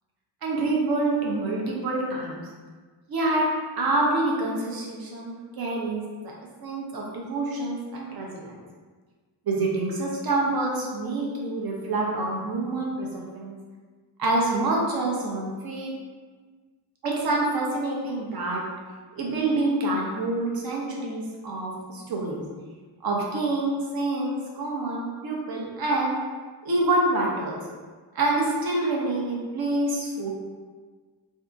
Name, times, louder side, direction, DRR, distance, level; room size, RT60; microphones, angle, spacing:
voice 1, 0.4-2.4 3.1-3.5 3.8-6.3 6.6-8.5 9.5-13.6 14.2-15.9 17.0-18.6 19.1-22.4 23.0-26.2 26.6-27.6 28.1-30.3, right 2 dB, 55° right, -2 dB, 0.7 m, -27 dB
2.7 x 2.5 x 2.4 m, 1.5 s
cardioid pair, 85°, 43 cm